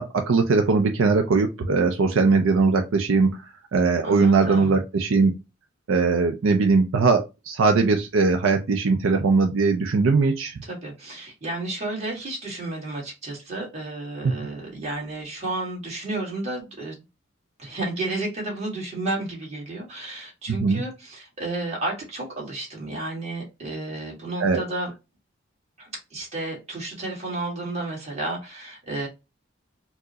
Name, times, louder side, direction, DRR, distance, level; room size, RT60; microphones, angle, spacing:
voice 1, 0.0-3.4 3.7-5.3 5.9-10.6 20.5-20.8 24.4-24.6, right 4 dB, 75° right, 4 dB, 0.5 m, -20 dB
voice 2, 4.0-4.8 10.6-17.0 17.6-24.9 25.8-29.1, right 2 dB, 35° right, -2 dB, 1.6 m, -32 dB
4.4 x 2.1 x 2.7 m, 0.25 s
head